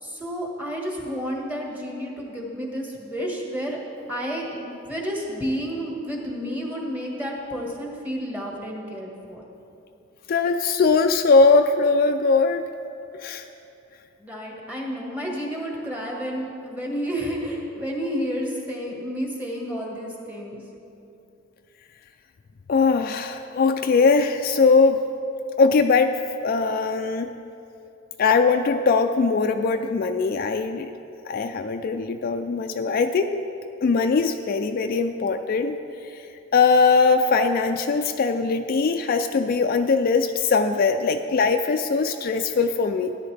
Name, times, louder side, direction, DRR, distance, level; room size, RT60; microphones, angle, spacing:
voice 1, 0.0-3.8 4.1-9.4 14.2-20.6, equal, 10° right, -2 dB, 1.5 m, -31 dB
voice 2, 10.3-12.6 13.2-13.4 22.7-25.0 25.6-27.3 28.2-30.9 31.3-33.5 33.8-35.8 36.0-36.2 36.5-43.2, left 4 dB, 45° left, 7 dB, 0.3 m, -21 dB
13.0 x 10.5 x 3.3 m, 2.7 s
head